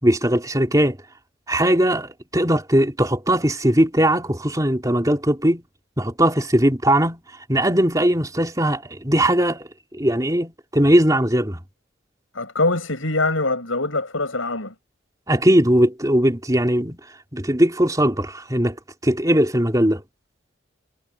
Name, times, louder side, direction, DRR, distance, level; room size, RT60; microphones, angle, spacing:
voice 1, 0.0-1.0 1.5-5.6 6.0-7.2 7.5-9.7 9.9-11.6 15.3-17.0 17.3-18.7 19.0-20.0, right 1 dB, 15° right, 3.3 m, -19 dB
voice 2, 12.3-14.7, left 2 dB, 80° left, 7.4 m, -23 dB
head